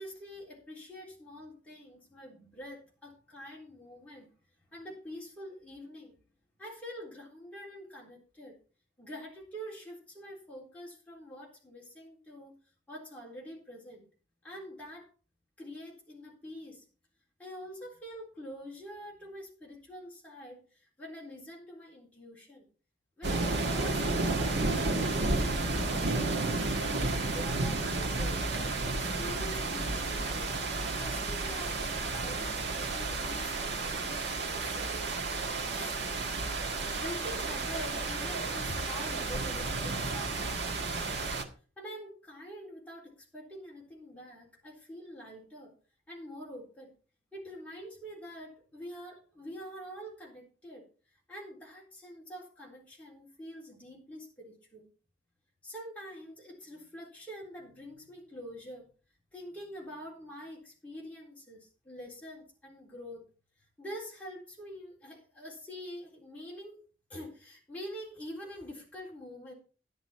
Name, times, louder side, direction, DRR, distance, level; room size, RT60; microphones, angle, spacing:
voice 1, 0.0-4.3 4.7-6.2 6.6-8.5 9.0-12.5 12.9-14.1 14.4-15.1 15.6-16.9 17.4-22.7 23.2-30.5 31.0-35.1 35.7-36.0 36.9-41.2 41.8-45.7 46.1-46.9 47.3-50.9 51.3-54.9 55.6-58.9 59.3-63.2 63.8-66.8 67.1-69.5, equal, 5° left, -4 dB, 3.8 m, -46 dB
sound 1, 23.2-41.4, right 3 dB, 65° right, 1.6 m, -32 dB
11.0 x 10.5 x 4.4 m, 0.37 s
head